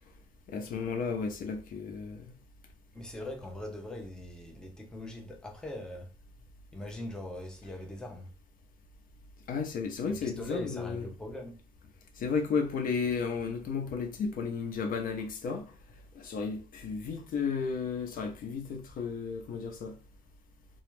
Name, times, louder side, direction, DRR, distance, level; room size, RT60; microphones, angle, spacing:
voice 1, 0.5-2.3 9.5-11.1 12.2-15.7 16.1-20.0, left 5 dB, 55° left, 0.5 m, -33 dB
voice 2, 2.9-6.1 6.7-8.3 10.1-11.6, left 1 dB, 5° left, 0.5 m, -41 dB
2.3 x 2.1 x 3.0 m
cardioid pair, 110°, 17 cm